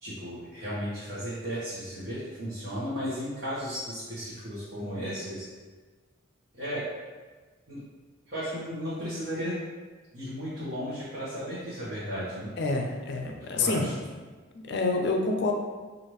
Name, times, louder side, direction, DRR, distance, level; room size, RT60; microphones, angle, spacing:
voice 1, 0.0-5.5 6.5-6.9 7.7-7.8 8.3-9.6 10.1-12.5 13.4-13.9, equal, 60° right, -11 dB, 1.0 m, -35 dB
voice 2, 12.6-13.9 14.5-15.5, left 3 dB, 55° left, 3 dB, 0.4 m, -27 dB
4.6 x 2.5 x 3.0 m, 1.4 s
head